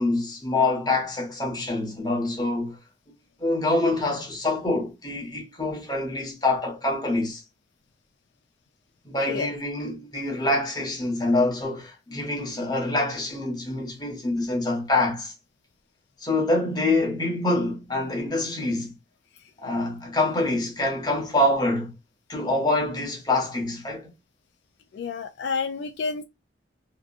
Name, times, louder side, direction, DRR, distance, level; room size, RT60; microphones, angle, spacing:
voice 1, 0.0-2.8 3.4-7.4 9.0-15.3 16.2-18.9 19.6-21.9 22.3-24.1, left 2 dB, 20° left, 0.9 m, -25 dB
voice 2, 24.9-26.2, left 5 dB, 70° left, 0.3 m, -29 dB
2.8 x 2.3 x 2.4 m
head